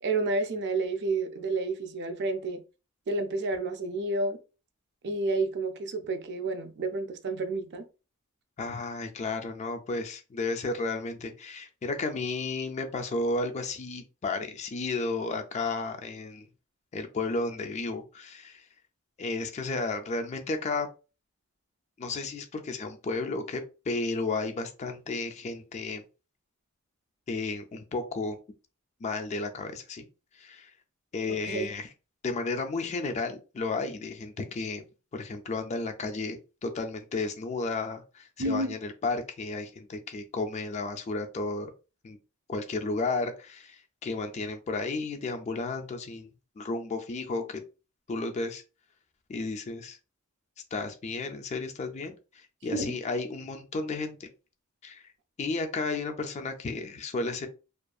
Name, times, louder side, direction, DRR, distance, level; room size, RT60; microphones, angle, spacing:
voice 1, 0.0-2.6 3.1-4.4 5.0-7.8 31.3-31.7 38.4-38.7 52.7-52.9, right 3 dB, 50° right, 0.4 m, -30 dB
voice 2, 8.6-16.5 16.9-18.6 19.2-20.9 22.0-26.0 27.3-28.4 29.0-30.1 30.4-30.7 31.1-31.9 32.2-34.8 35.1-41.7 42.0-42.2 42.5-46.3 46.6-47.6 48.1-48.6 49.3-50.0 50.7-54.3 54.8-55.0 55.4-57.5, left 3 dB, 30° left, 0.3 m, -33 dB
2.6 x 2.4 x 2.2 m
head